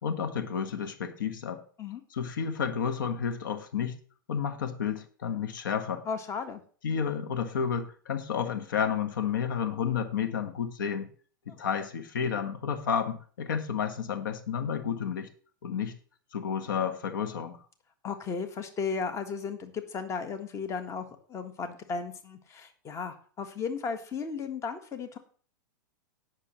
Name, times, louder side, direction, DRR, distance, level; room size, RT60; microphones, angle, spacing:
voice 1, 0.0-1.6 2.1-3.9 4.3-6.0 6.8-11.1 11.5-15.3 15.6-15.9 16.3-17.6, left 7 dB, 70° left, 8 dB, 1.4 m, -31 dB
voice 2, 6.0-6.6 18.0-25.2, left 5 dB, 25° left, 8 dB, 1.4 m, -35 dB
18.0 x 6.4 x 3.1 m, 0.43 s
hypercardioid pair, 105°, 11 cm